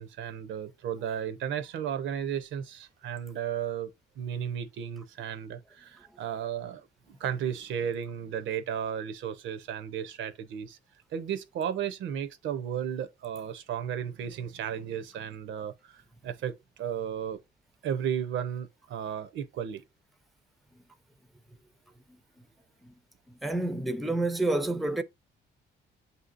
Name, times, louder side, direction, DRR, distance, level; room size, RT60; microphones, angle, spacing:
voice 1, 0.0-10.8 11.1-16.5 16.8-17.4 17.8-19.8, right 9 dB, 75° right, 0.6 m, -34 dB
voice 2, 23.4-25.0, right 2 dB, ahead, 0.4 m, -28 dB
7.8 x 2.7 x 2.4 m
cardioid pair, 90°, 20 cm